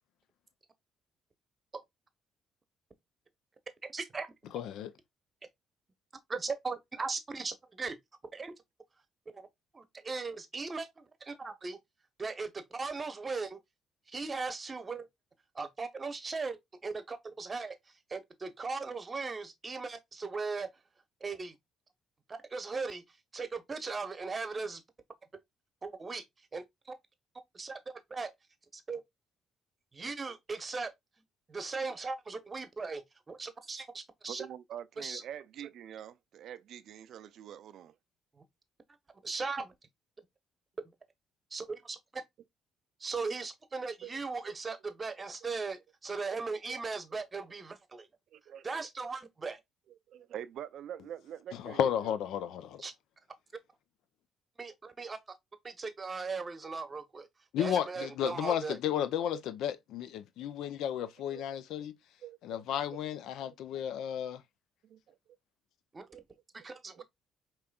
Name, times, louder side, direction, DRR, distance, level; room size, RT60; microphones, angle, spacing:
voice 1, 3.9-4.3 6.3-8.0 8.3-8.5 9.3-9.5 9.7-11.8 12.2-13.6 14.1-15.1 15.5-16.6 16.8-17.8 18.1-20.7 21.2-21.5 22.3-23.0 23.3-24.8 25.8-26.2 26.5-26.9 27.5-27.8 28.1-28.3 28.7-29.0 29.9-30.9 31.5-34.5 35.0-35.2 39.2-39.7 41.5-41.6 43.0-48.1 48.6-49.6 52.8-52.9 54.6-55.2 55.6-57.3 57.6-58.8 65.9-66.0 66.5-67.0, right 4 dB, 35° right, 0.8 m, -38 dB
voice 2, 4.5-4.9 51.5-52.8 57.5-61.9 62.4-64.4, left 9 dB, 75° left, 0.5 m, -33 dB
voice 3, 34.3-37.9 44.0-44.2 44.4-44.5 46.3-46.6 48.3-48.8 50.1-52.1 59.3-59.4 61.3-61.4 62.2-62.6 64.9-65.0 66.1-66.2 66.7-67.0, right 10 dB, 70° right, 0.3 m, -45 dB
4.9 x 3.0 x 2.3 m
supercardioid pair, 60°, 0 cm